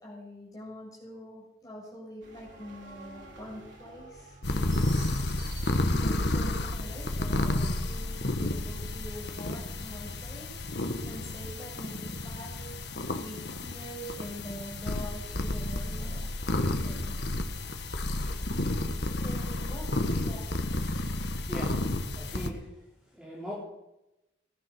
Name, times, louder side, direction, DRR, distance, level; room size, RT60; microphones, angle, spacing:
voice 1, 0.0-5.2 5.6-12.7 13.2-17.3 17.7-17.8 19.2-20.6, equal, 20° left, -4 dB, 7.2 m, -45 dB
sound 1, 2.2-16.0, right 1 dB, 85° right, 4.5 m, -51 dB
sound 2, 4.4-22.5, left 2 dB, 65° left, 1.4 m, -31 dB
voice 2, 21.5-23.5, equal, 5° right, -6 dB, 3.8 m, -41 dB
19.0 x 11.5 x 6.2 m, 0.91 s
head